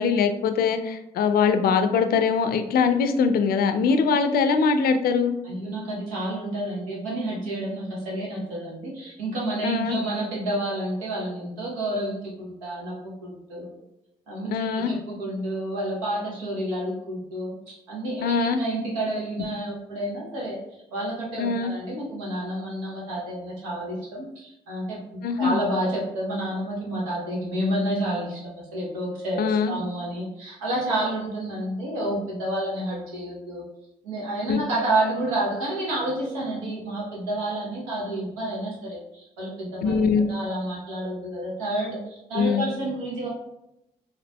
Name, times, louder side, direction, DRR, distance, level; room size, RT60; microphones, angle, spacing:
voice 1, 0.0-5.3 9.6-10.0 14.5-14.9 18.2-18.6 21.4-21.7 25.2-25.6 29.4-29.8 34.5-34.6 39.8-40.3 42.3-42.6, left 5 dB, 65° left, 8 dB, 0.4 m, -22 dB
voice 2, 5.4-13.7 14.3-20.6 20.9-33.6 34.0-43.3, right 1 dB, 90° right, -4 dB, 0.8 m, -30 dB
4.0 x 2.6 x 2.2 m, 0.85 s
hypercardioid pair, 40°, 17 cm